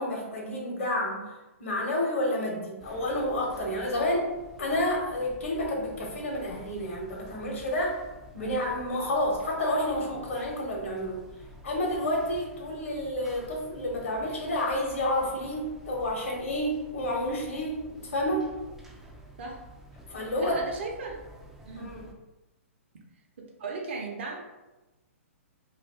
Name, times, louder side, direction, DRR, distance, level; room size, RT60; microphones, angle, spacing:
voice 1, 0.0-1.3 1.6-4.3 4.6-8.0 8.3-11.2 11.6-18.5 20.1-20.6 21.7-22.1, left 1 dB, 65° left, -1 dB, 1.0 m, -30 dB
sound 1, 2.8-22.1, right 1 dB, 5° right, 0.3 m, -50 dB
voice 2, 20.4-21.2 21.6-21.9 23.6-24.4, right 4 dB, 55° right, 0 dB, 0.7 m, -36 dB
2.5 x 2.3 x 3.4 m, 1.1 s
figure-of-eight pair, 120°, 8 cm